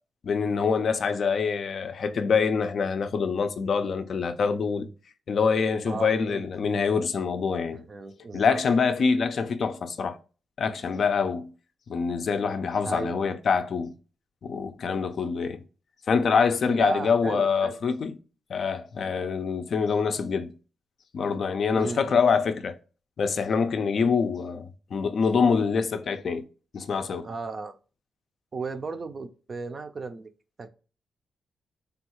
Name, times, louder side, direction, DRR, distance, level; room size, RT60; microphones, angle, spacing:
voice 1, 0.2-4.9 5.3-7.8 8.3-10.2 10.6-11.5 11.9-13.9 14.4-15.6 16.1-18.2 18.5-20.5 21.1-22.7 23.2-26.4 26.7-27.3, left 5 dB, 60° left, 0.4 m, -25 dB
voice 2, 5.9-6.5 7.9-8.6 12.8-13.4 16.7-17.8 21.8-22.2 24.0-24.1 27.2-27.8 28.5-30.3 30.6-30.7, right 3 dB, 40° right, 0.4 m, -34 dB
3.4 x 2.3 x 2.9 m
cardioid pair, 100°, 0 cm